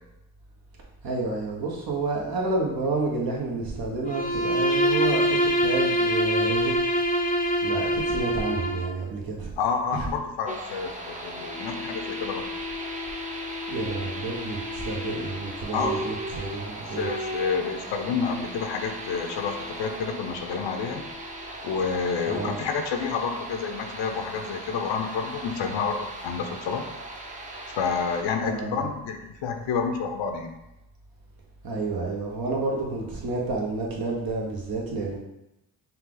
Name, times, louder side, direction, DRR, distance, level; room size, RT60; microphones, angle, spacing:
voice 1, 1.0-6.8 7.6-9.5 13.7-17.1 22.3-22.6 28.4-28.9 31.6-35.2, right 3 dB, 55° right, -1 dB, 1.2 m, -30 dB
Bowed string instrument, 4.1-9.0, right 1 dB, 20° left, 0.6 m, -24 dB
voice 2, 9.6-12.5 15.7-15.9 16.9-21.0 21.6-26.8 27.7-30.5, left 5 dB, 80° left, 5 dB, 0.7 m, -29 dB
sound 1, 10.5-28.2, equal, 15° right, 0.7 m, -36 dB
5.6 x 2.3 x 3.8 m, 0.90 s
cardioid pair, 95°, 43 cm